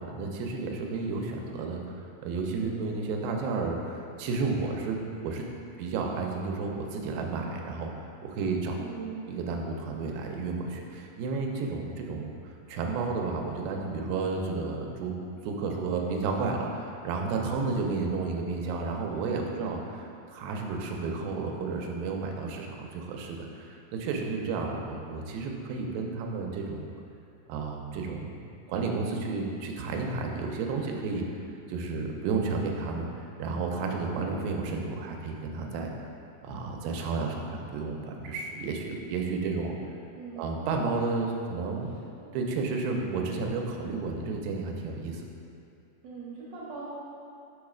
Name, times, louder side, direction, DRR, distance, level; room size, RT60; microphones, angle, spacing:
voice 1, 0.0-1.9 2.2-5.5 5.8-8.8 9.3-12.3 12.7-15.1 15.4-19.8 20.3-26.9 27.5-28.4 28.7-31.3 31.7-35.9 36.4-39.7 40.4-41.9 42.3-45.2, right 4 dB, 85° right, 1 dB, 2.4 m, -32 dB
voice 2, 2.6-2.9 8.8-9.3 19.5-19.8 40.2-40.6 42.2-42.4 46.0-46.9, right 5 dB, 70° right, -7 dB, 1.6 m, -41 dB
6.4 x 3.1 x 4.9 m, 2.6 s
omnidirectional pair, 4.1 m